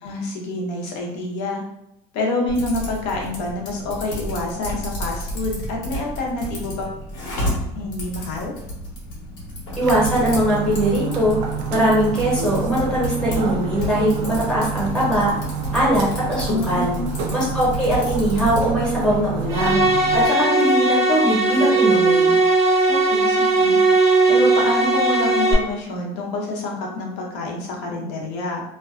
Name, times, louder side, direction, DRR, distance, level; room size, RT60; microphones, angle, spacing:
voice 1, 0.0-1.6 2.1-7.0 7.8-8.5 16.5-17.1 22.9-23.8 24.3-28.6, left 2 dB, 65° left, 0 dB, 0.7 m, -27 dB
Typing, 2.5-18.7, equal, 85° left, 1.1 m, -32 dB
voice 2, 9.8-11.4 11.7-15.3 15.7-16.9 17.3-19.8 20.1-22.4, equal, 5° left, -7 dB, 0.9 m, -21 dB
sound 1, 9.8-20.3, right 5 dB, 85° right, 0.4 m, -28 dB
sound 2, 19.5-25.5, right 3 dB, 25° right, 0.4 m, -18 dB
2.6 x 2.2 x 2.3 m, 0.80 s
cardioid pair, 170°, 12 cm